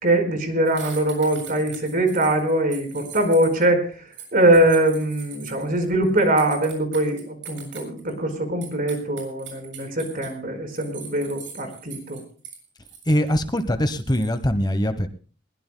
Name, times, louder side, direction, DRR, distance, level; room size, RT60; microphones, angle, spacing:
voice 1, 0.0-3.8 4.3-12.2, right 1 dB, 50° right, 6 dB, 4.7 m, -22 dB
sound 1, 0.7-3.6 4.1-8.3 8.6-10.3 10.8-12.6 12.8-13.3 13.6-13.7 14.0-14.3, right 6 dB, 75° right, 7.1 m, -41 dB
voice 2, 13.1-15.1, equal, 20° left, 9 dB, 1.0 m, -22 dB
21.5 x 20.0 x 2.2 m, 0.40 s
head